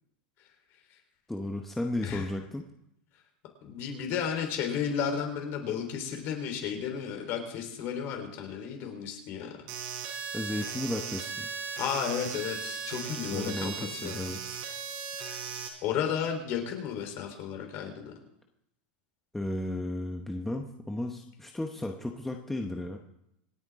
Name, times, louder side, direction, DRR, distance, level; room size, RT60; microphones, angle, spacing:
voice 1, 1.3-2.6 10.3-11.5 13.3-14.6 19.3-23.0, left 1 dB, 5° left, 2 dB, 1.0 m, -34 dB
voice 2, 3.6-9.5 11.8-14.2 15.8-18.1, left 8 dB, 45° left, 4 dB, 3.8 m, -33 dB
sound 1, 9.7-15.7, right 6 dB, 65° right, 4.4 m, -37 dB
27.0 x 9.1 x 3.7 m, 0.80 s
supercardioid pair, 140°, 5 cm